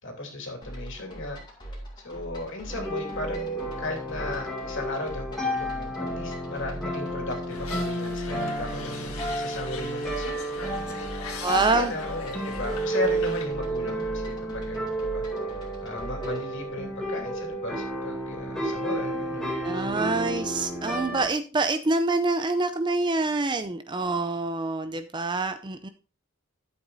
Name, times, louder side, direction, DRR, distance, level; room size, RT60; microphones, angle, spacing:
voice 1, 0.0-1.4 2.0-15.2 15.8-19.6, left 2 dB, 55° left, 2 dB, 2.9 m, -36 dB
sound 1, 0.6-16.5, right 1 dB, 20° left, 2.8 m, -42 dB
sound 2, 2.7-21.3, right 1 dB, 5° left, 2.4 m, -31 dB
sound 3, 7.5-13.5, left 5 dB, 70° left, 1.8 m, -42 dB
voice 2, 11.4-11.9 19.6-25.9, right 3 dB, 20° right, 10 dB, 0.4 m, -26 dB
12.5 x 8.0 x 2.6 m, 0.35 s
head